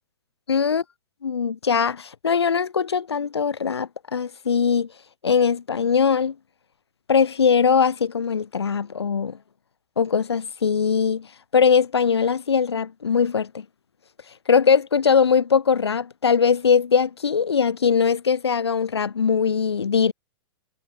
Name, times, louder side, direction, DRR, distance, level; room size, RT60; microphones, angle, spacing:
voice 1, 0.5-0.8 1.2-4.9 5.2-6.3 7.1-9.4 10.0-11.3 11.5-13.6 14.5-20.1, left 6 dB, 70° left, 6.1 m, -21 dB
figure-of-eight pair, 105°, 14 cm